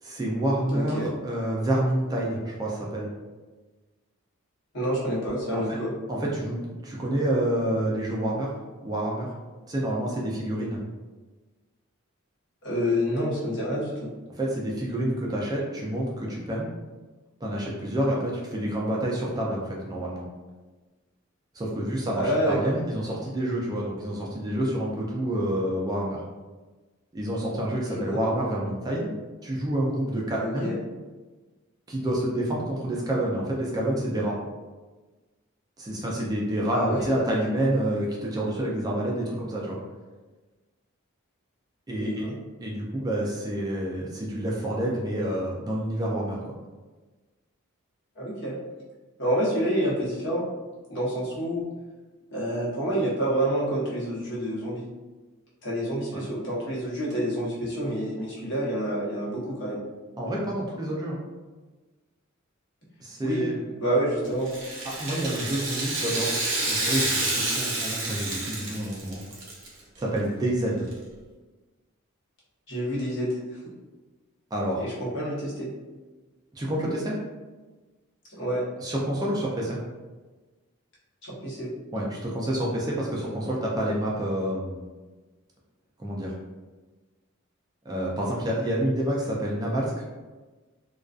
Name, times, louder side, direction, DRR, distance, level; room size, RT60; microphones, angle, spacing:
voice 1, 0.0-3.1 5.5-5.8 6.1-8.5 8.8-9.3 9.7-10.8 14.3-16.7 17.4-20.3 21.5-26.2 27.1-29.1 29.4-30.7 31.9-34.4 35.8-39.8 41.9-42.3 42.6-46.4 56.1-56.3 60.2-61.2 63.0-63.6 65.0-66.4 66.7-69.2 70.0-70.8 74.5-74.8 76.5-77.2 78.8-79.8 81.9-84.9 86.0-86.3 87.9-90.0, right 1 dB, 20° right, -4 dB, 0.3 m, -28 dB
voice 2, 0.7-1.1 4.7-5.9 12.6-14.1 22.1-22.7 27.9-28.2 30.4-30.8 36.7-37.0 42.0-42.3 48.2-48.6 49.2-50.4 50.9-51.6 52.3-54.9 55.6-59.8 63.2-63.4 63.8-64.5 72.7-73.6 74.8-75.7 78.3-78.6 81.2-81.7, equal, 55° left, -7 dB, 0.9 m, -28 dB
Rattle (instrument), 64.4-69.7 70.0-70.1 70.9-71.0, right 2 dB, 60° right, 0.6 m, -29 dB
2.4 x 2.3 x 2.3 m, 1.3 s
head